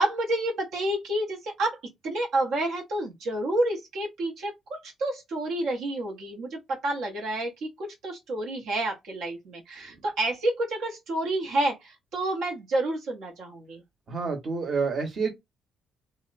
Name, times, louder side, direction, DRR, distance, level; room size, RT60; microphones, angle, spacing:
voice 1, 0.0-1.8 2.0-7.5 7.8-13.8, right 1 dB, 80° right, 0.7 m, -29 dB
voice 2, 14.1-15.3, right 4 dB, 50° right, 0.9 m, -28 dB
2.7 x 2.0 x 2.4 m
cardioid pair, 90°, 0 cm